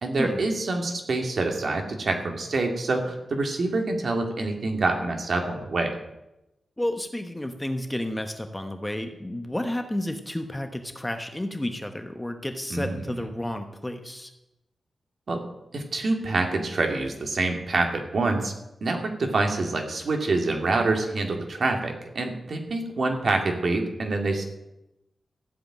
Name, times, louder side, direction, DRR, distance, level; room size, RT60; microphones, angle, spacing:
voice 1, 0.0-5.9 12.7-13.2 15.3-15.4 15.7-18.5 18.8-24.4, right 3 dB, 50° right, 3 dB, 2.6 m, -26 dB
voice 2, 6.8-14.3, left 1 dB, 10° left, 6 dB, 1.0 m, -31 dB
15.0 x 7.8 x 9.0 m, 0.92 s
wide cardioid pair, 155°, 0 cm